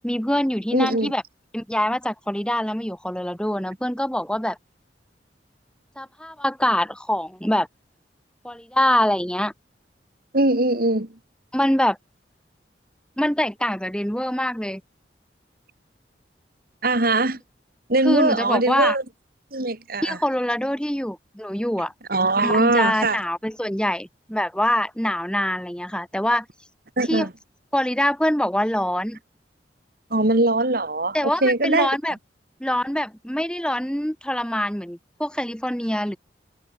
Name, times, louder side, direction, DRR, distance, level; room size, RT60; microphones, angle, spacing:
voice 1, 0.0-1.2 1.5-4.6 6.0-7.7 8.4-9.5 11.5-12.0 13.2-14.8 18.0-19.0 20.0-21.9 22.4-26.5 27.1-27.3 27.7-29.2 31.1-32.2 32.6-36.2, left 1 dB, 5° left, 4.4 m, -24 dB
voice 2, 0.7-1.1 10.3-11.1 16.8-17.4 17.9-19.0 19.5-20.2 22.1-23.2 27.0-27.3 30.1-31.2 31.4-31.9, right 2 dB, 55° right, 3.1 m, -21 dB
head